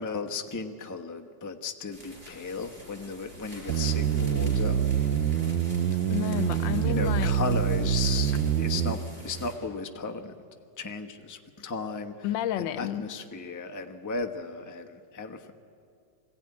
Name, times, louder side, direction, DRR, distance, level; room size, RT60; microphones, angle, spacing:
voice 1, 0.0-4.8 6.8-10.3 10.8-12.1 12.6-15.5, left 4 dB, 15° left, 0.8 m, -35 dB
sound 1, 1.8-9.5, equal, 25° right, 6.3 m, -46 dB
sound 2, 3.7-8.9, right 9 dB, 85° right, 1.5 m, -26 dB
voice 2, 6.1-7.4 12.2-13.1, left 12 dB, 85° left, 1.5 m, -31 dB
23.0 x 16.0 x 9.6 m
omnidirectional pair, 2.0 m